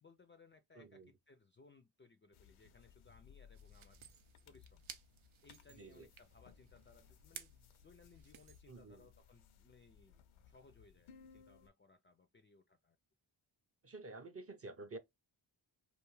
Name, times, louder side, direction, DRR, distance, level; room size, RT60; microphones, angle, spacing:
voice 1, 0.0-4.0 4.5-4.8 5.4-13.0, left 4 dB, 25° left, 0.3 m, -65 dB
voice 2, 0.7-1.1 5.8-6.1 8.7-9.1 13.8-15.0, right 2 dB, 30° right, 0.5 m, -50 dB
sound 1, 2.3-11.7, left 7 dB, 80° left, 0.6 m, -63 dB
sound 2, 3.5-8.6, right 8 dB, 85° right, 0.6 m, -57 dB
2.5 x 2.3 x 3.0 m
cardioid pair, 55°, 48 cm